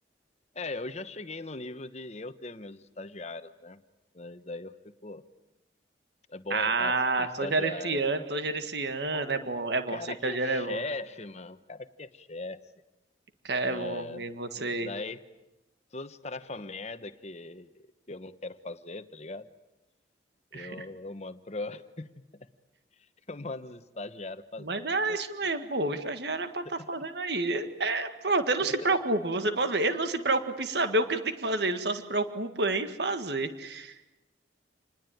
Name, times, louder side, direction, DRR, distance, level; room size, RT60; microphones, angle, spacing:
voice 1, 0.5-3.8 4.1-5.3 6.3-8.0 9.1-9.5 9.9-12.6 13.6-15.3 15.9-19.5 20.5-22.5 23.3-25.2 26.6-27.1 28.6-28.7, left 2 dB, 35° left, 11 dB, 1.1 m, -40 dB
voice 2, 6.5-10.8 13.4-14.9 20.5-20.7 24.6-33.9, right 2 dB, 60° right, 8 dB, 1.8 m, -29 dB
28.0 x 20.5 x 9.3 m, 0.96 s
head